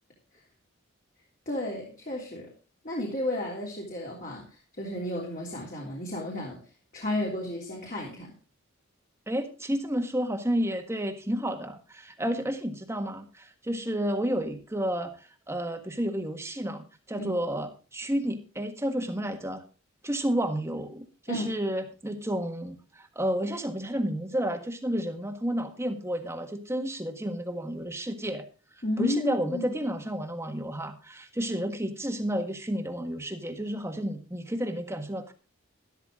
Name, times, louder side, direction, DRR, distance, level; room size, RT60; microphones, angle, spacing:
voice 1, 1.5-2.5 2.8-4.5 4.7-6.6 6.9-8.3 17.2-17.3 21.3-21.5 28.8-29.7, left 1 dB, 40° left, -2 dB, 3.2 m, -32 dB
voice 2, 9.3-19.6 20.0-28.4 29.0-35.3, equal, 15° right, 6 dB, 1.5 m, -31 dB
12.5 x 12.5 x 3.7 m, 0.33 s
head